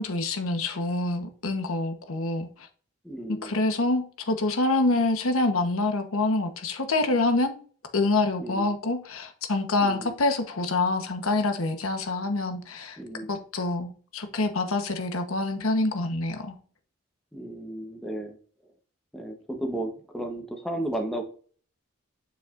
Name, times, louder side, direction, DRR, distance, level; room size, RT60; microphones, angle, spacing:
voice 1, 0.0-2.5 3.3-7.6 7.9-13.0 13.3-16.5, left 2 dB, 80° left, 1.0 m, -26 dB
voice 2, 3.0-3.5 8.4-8.7 9.8-10.2 13.0-13.4 17.3-18.4 19.1-21.2, right 1 dB, ahead, 0.9 m, -34 dB
7.1 x 5.7 x 2.5 m
head